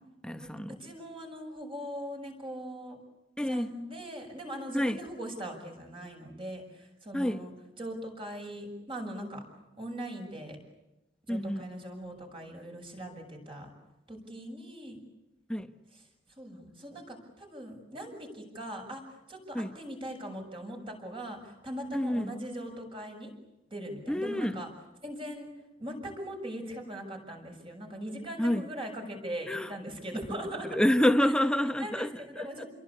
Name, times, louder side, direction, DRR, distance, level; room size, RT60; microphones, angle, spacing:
voice 1, 0.0-0.8 3.4-3.8 4.7-5.0 7.1-7.4 11.3-11.7 15.5-15.7 19.5-19.7 21.9-22.3 24.1-24.6 28.4-28.7 29.5-29.7 30.7-32.6, left 1 dB, 5° left, 1.1 m, -28 dB
voice 2, 0.8-3.0 3.5-7.5 7.8-9.4 9.8-10.6 11.3-13.7 14.1-15.0 16.4-23.3 23.7-24.7 25.0-25.5 25.8-30.8 31.8-32.7, right 1 dB, 30° right, 6.9 m, -40 dB
29.0 x 22.5 x 8.5 m
head